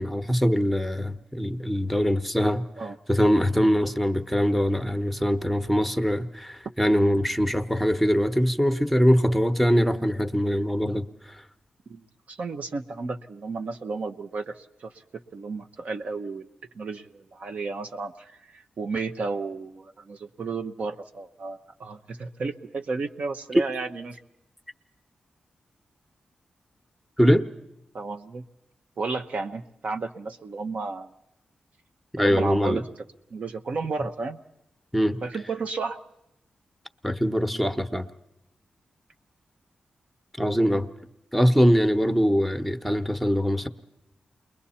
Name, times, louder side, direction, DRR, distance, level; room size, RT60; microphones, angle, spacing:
voice 1, 0.0-2.6 3.1-11.1 27.2-27.4 32.2-32.8 34.9-35.2 37.0-38.1 40.4-40.9 41.3-43.7, equal, ahead, 8 dB, 1.0 m, -22 dB
voice 2, 11.9-16.5 16.7-24.2 27.9-28.4 29.0-31.1 32.2-32.9 33.3-34.4 35.2-36.0, right 4 dB, 65° right, 6 dB, 0.9 m, -33 dB
28.5 x 21.5 x 4.3 m, 0.85 s
cardioid pair, 60°, 3 cm